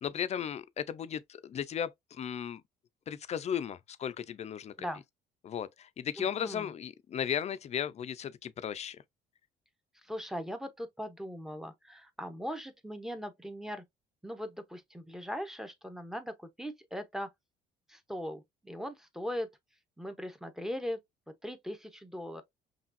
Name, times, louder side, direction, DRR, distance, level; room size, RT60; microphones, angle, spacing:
voice 1, 0.0-2.6 3.1-4.7 5.4-9.0, left 8 dB, 40° left, 0.5 m, -35 dB
voice 2, 6.2-6.7 10.0-13.8 14.2-17.3 17.9-19.5 20.0-21.0 21.4-22.4, equal, ahead, 0.9 m, -39 dB
5.8 x 2.4 x 2.6 m
cardioid pair, 110°, 17 cm